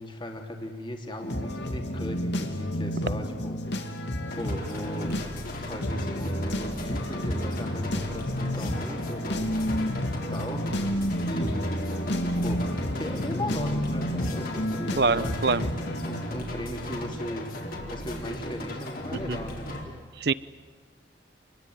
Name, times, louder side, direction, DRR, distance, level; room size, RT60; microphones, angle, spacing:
voice 1, 0.0-5.2 5.6-9.6 10.1-12.0 12.4-12.7 12.9-19.9, left 1 dB, 25° left, 3 dB, 3.1 m, -38 dB
sound 1, 1.2-16.2, equal, 70° left, 2.8 m, -30 dB
sound 2, 4.3-19.8, left 1 dB, 50° left, 4.2 m, -37 dB
voice 2, 15.0-15.6 19.1-19.4 20.2-20.3, right 4 dB, 60° right, 18 dB, 0.8 m, -24 dB
28.0 x 21.5 x 9.5 m, 1.5 s
head